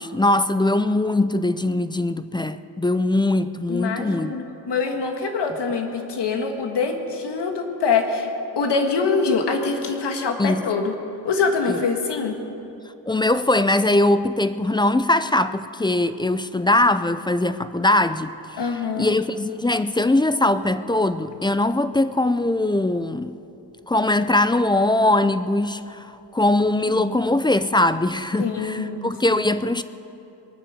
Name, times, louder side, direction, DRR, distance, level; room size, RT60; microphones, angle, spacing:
voice 1, 0.0-4.3 10.4-10.7 11.7-11.8 13.1-18.6 19.0-23.4 23.9-26.1 26.3-29.8, left 2 dB, 10° left, 0.3 m, -21 dB
voice 2, 3.7-8.3 8.5-10.9 11.2-12.4 18.6-19.1 26.9-27.1 28.4-29.1, left 4 dB, 70° left, 1.8 m, -24 dB
22.0 x 9.7 x 6.6 m
wide cardioid pair, 110°, 43 cm